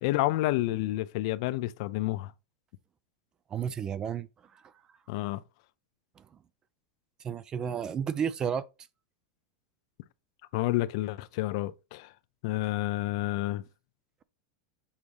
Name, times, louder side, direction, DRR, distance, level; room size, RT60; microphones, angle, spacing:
voice 1, 0.0-2.3 5.1-5.4 10.5-12.1 12.4-13.6, left 17 dB, 55° left, 0.5 m, -29 dB
voice 2, 3.5-4.3 7.2-8.6, right 7 dB, 20° right, 0.4 m, -31 dB
7.1 x 5.0 x 3.1 m
supercardioid pair, 160°, 3 cm